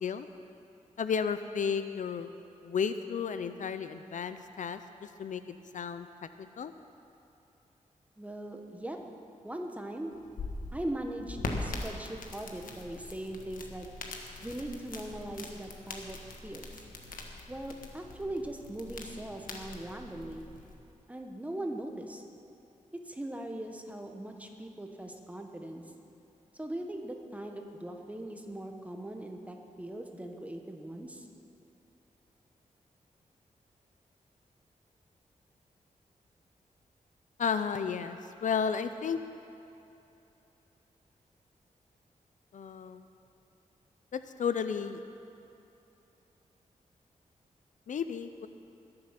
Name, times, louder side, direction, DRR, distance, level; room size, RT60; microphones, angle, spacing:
voice 1, 1.0-2.3 2.6-5.4 5.7-6.1 6.4-6.7 37.4-39.2 42.5-43.0 44.1-45.0 47.9-48.5, left 6 dB, 70° left, 10 dB, 0.6 m, -33 dB
voice 2, 8.2-9.0 9.4-10.1 10.7-13.9 14.4-16.2 16.4-16.8 17.5-20.5 21.1-22.2 22.9-25.8 26.6-31.3, right 1 dB, 10° right, 3 dB, 1.3 m, -40 dB
sound 1, 10.1-20.7, left 3 dB, 85° left, 1.5 m, -42 dB
21.0 x 7.8 x 5.9 m, 2.9 s
wide cardioid pair, 105°, 14 cm